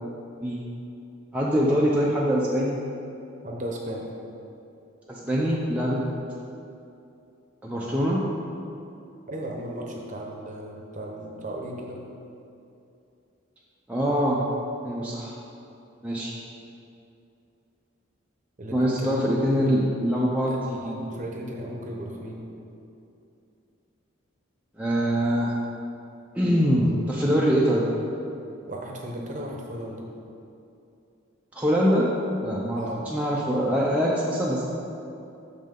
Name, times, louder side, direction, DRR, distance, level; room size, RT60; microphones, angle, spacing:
voice 1, 1.3-2.8 5.1-6.0 7.6-8.3 13.9-14.4 14.8-15.4 16.0-16.3 18.7-21.0 24.8-25.5 26.3-27.9 31.5-32.1 32.4-34.6, equal, 5° right, -6 dB, 0.4 m, -24 dB
voice 2, 3.4-4.1 9.3-12.0 18.6-19.2 19.6-19.9 20.5-22.4 28.7-30.0 32.8-33.0, right 1 dB, 35° right, 0 dB, 0.7 m, -36 dB
6.4 x 5.4 x 3.7 m, 2.7 s
head